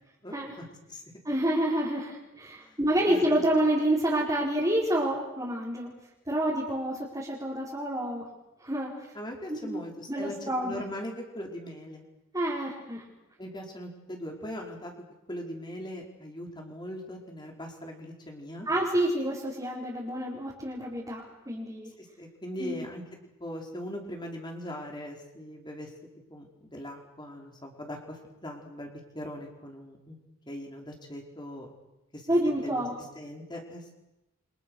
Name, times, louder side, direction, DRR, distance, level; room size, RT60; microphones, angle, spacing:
voice 1, 0.2-1.0 2.6-2.7 3.1-3.4 9.1-12.0 13.4-14.9 15.3-18.7 22.0-23.0 23.4-25.9 26.3-30.2 30.5-31.7 32.1-32.9 33.1-33.9, equal, 20° left, 1 dB, 4.8 m, -40 dB
voice 2, 1.2-5.9 6.3-8.3 8.6-8.9 9.5-9.8 10.1-10.8 12.3-13.0 18.6-21.9 22.6-22.8 32.3-32.9, right 1 dB, 15° right, -6 dB, 4.9 m, -28 dB
29.0 x 26.0 x 6.5 m, 0.92 s
head